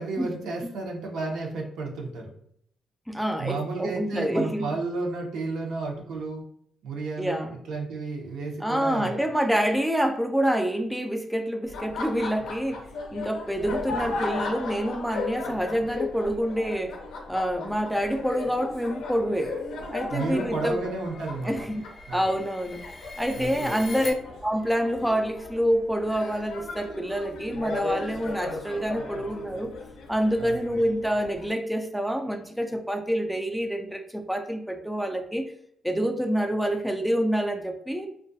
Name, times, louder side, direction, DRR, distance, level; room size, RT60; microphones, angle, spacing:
voice 1, 0.0-2.3 3.4-6.4 6.8-9.2 20.1-21.5 22.1-22.3 23.3-24.0 30.4-30.6, right 3 dB, 75° right, 0.6 m, -32 dB
voice 2, 3.1-4.7 7.2-7.6 8.6-12.8 13.1-17.0 17.3-19.5 19.9-20.8 21.4-22.8 23.2-24.1 24.4-29.7 30.1-35.5 35.8-38.1, equal, ahead, 0.3 m, -27 dB
Laughter, 11.6-31.5, left 3 dB, 75° left, 0.5 m, -36 dB
sound 1, 19.5-24.1, left 2 dB, 25° left, 0.7 m, -44 dB
2.3 x 2.2 x 2.5 m
cardioid pair, 90°, 0 cm